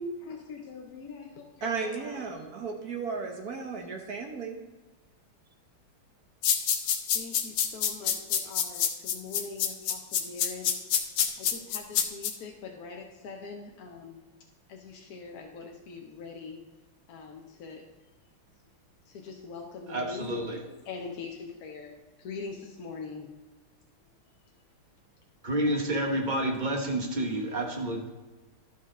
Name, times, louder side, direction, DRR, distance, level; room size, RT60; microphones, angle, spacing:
voice 1, 0.0-2.2 6.5-6.6 7.1-10.7 11.4-14.2 14.7-16.6 17.1-17.9 19.1-20.3 20.8-23.3, left 4 dB, 60° left, 1 dB, 1.0 m, -42 dB
voice 2, 1.6-4.6, right 5 dB, 55° right, 3 dB, 1.2 m, -34 dB
sound 1, 6.4-12.3, left 8 dB, 85° left, 1.7 m, -26 dB
voice 3, 19.9-20.6 25.4-28.1, right 1 dB, 30° right, 2 dB, 0.8 m, -29 dB
12.0 x 5.7 x 3.7 m, 1.2 s
omnidirectional pair, 2.3 m